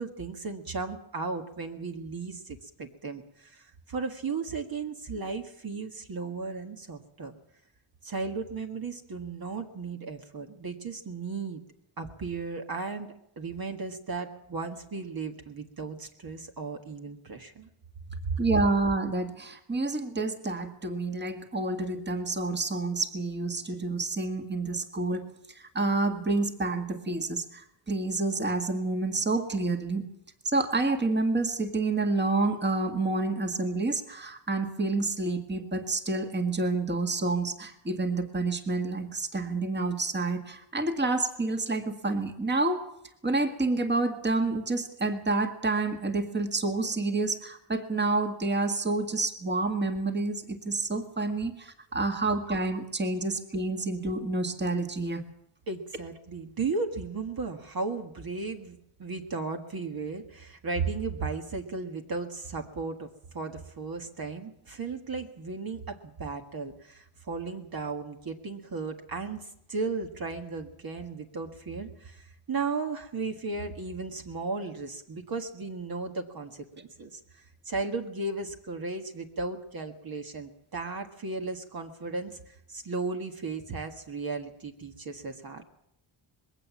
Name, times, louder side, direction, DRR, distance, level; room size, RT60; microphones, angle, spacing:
voice 1, 0.0-7.3 8.0-11.6 12.0-17.7 18.2-18.4 55.7-63.1 63.3-85.6, right 4 dB, 45° right, 4 dB, 1.8 m, -35 dB
voice 2, 18.4-30.1 30.4-42.9 43.2-55.3, right 3 dB, 20° right, 6 dB, 1.8 m, -29 dB
21.5 x 17.0 x 7.3 m, 0.76 s
wide cardioid pair, 165°, 50 cm